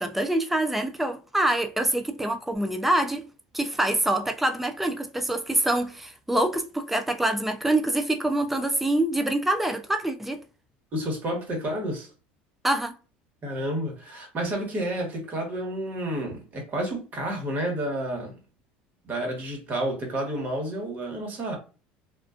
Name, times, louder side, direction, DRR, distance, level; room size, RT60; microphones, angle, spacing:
voice 1, 0.0-3.3 3.5-10.4 12.6-12.9, right 1 dB, 5° right, 0.4 m, -25 dB
voice 2, 10.9-12.1 13.4-18.3 19.0-21.6, right 1 dB, 35° right, 1.2 m, -30 dB
2.4 x 2.3 x 2.4 m
supercardioid pair, 110°, 5 cm